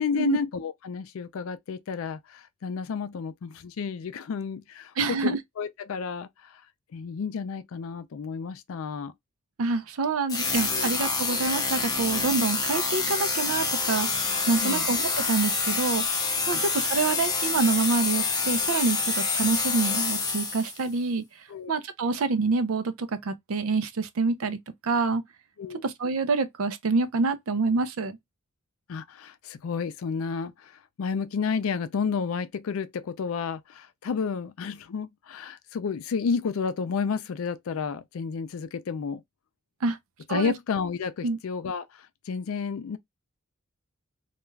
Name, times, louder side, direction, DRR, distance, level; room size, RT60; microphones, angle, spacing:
voice 1, 0.0-5.3 5.6-6.6 6.9-9.1 10.7-11.0 14.6-14.9 16.5-16.6 21.5-21.7 25.6-25.8 28.9-30.7 31.0-39.2 40.3-43.0, left 5 dB, 70° left, 0.4 m, -31 dB
voice 2, 5.0-5.4 9.6-24.6 24.8-25.2 25.8-28.2 39.8-40.0 40.3-40.5 41.2-41.4, right 4 dB, 75° right, 0.5 m, -27 dB
sound 1, 10.3-20.8, left 4 dB, 20° left, 0.5 m, -27 dB
2.4 x 2.2 x 3.1 m
head